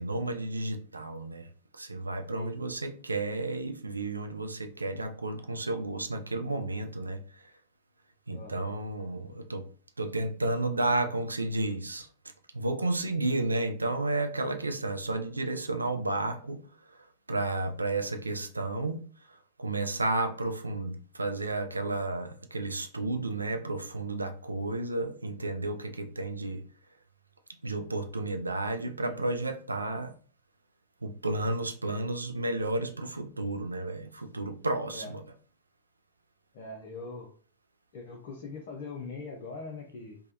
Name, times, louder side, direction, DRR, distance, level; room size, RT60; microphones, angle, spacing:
voice 1, 0.0-1.5 1.7-7.2 8.3-9.7 10.0-12.1 12.5-16.6 17.3-19.0 19.6-26.6 27.6-30.1 31.0-35.2, right 2 dB, 80° right, 0.3 m, -32 dB
voice 2, 8.3-8.7 29.0-29.2 34.9-35.1 36.5-37.3 37.9-40.2, left 3 dB, 50° left, 0.6 m, -42 dB
3.3 x 2.1 x 2.7 m
figure-of-eight pair, 90°, 0 cm